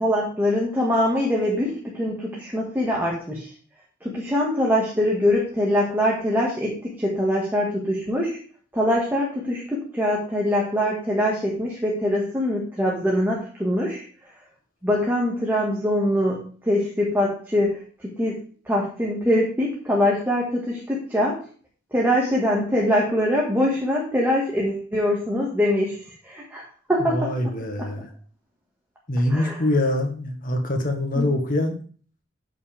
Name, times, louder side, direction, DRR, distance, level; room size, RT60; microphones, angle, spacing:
voice 1, 0.0-3.5 4.0-8.4 8.7-14.0 14.8-18.4 18.6-21.4 21.9-27.3 29.3-29.6 31.1-31.3, left 1 dB, 10° right, -3 dB, 1.7 m, -23 dB
voice 2, 27.1-28.1 29.1-31.8, left 1 dB, 45° left, 4 dB, 1.6 m, -24 dB
12.0 x 5.8 x 3.5 m, 0.41 s
head